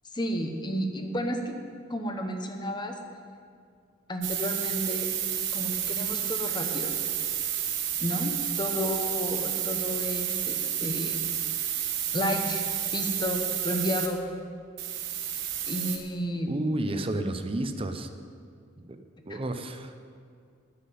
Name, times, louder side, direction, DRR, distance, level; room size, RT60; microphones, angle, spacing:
voice 1, 0.1-1.6 1.9-2.9 4.1-5.1 5.5-6.9 8.0-11.2 12.1-14.2 15.7-16.5 19.3-19.4, equal, 20° left, 4 dB, 1.1 m, -32 dB
sound 1, 4.2-14.1 14.8-16.0, right 10 dB, 60° right, 1.3 m, -30 dB
voice 2, 16.5-18.1 18.8-19.0 19.3-19.9, right 1 dB, 30° right, 8 dB, 0.7 m, -31 dB
10.0 x 7.5 x 9.2 m, 2.2 s
head